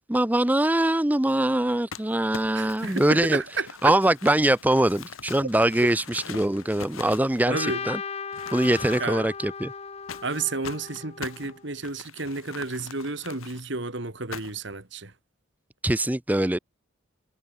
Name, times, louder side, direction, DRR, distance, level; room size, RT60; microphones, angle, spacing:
voice 1, 0.0-3.4 3.8-8.0 8.5-9.7 15.8-16.6, right 1 dB, 10° right, 0.5 m, -23 dB
Crumpling crinkling, 1.9-7.9 8.3-9.3 10.1-13.6 14.3-14.7, left 6 dB, 85° left, 1.5 m, -42 dB
voice 2, 2.5-3.9 7.5-7.9 9.0-9.3 10.2-15.1, right 3 dB, 55° right, 2.0 m, -31 dB
Trumpet, 7.5-11.6, left 5 dB, 30° left, 0.7 m, -36 dB
head